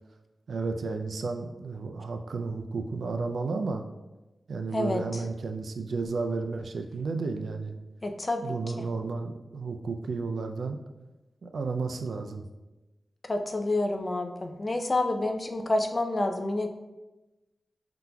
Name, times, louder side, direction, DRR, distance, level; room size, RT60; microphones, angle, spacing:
voice 1, 0.5-3.8 4.5-7.8 8.4-10.8 11.4-12.5, right 4 dB, 85° right, 6 dB, 0.4 m, -32 dB
voice 2, 4.7-5.3 8.0-8.8 13.2-16.7, left 2 dB, 35° left, 5 dB, 0.5 m, -29 dB
5.7 x 3.9 x 2.2 m, 1.1 s
wide cardioid pair, 85°, 0 cm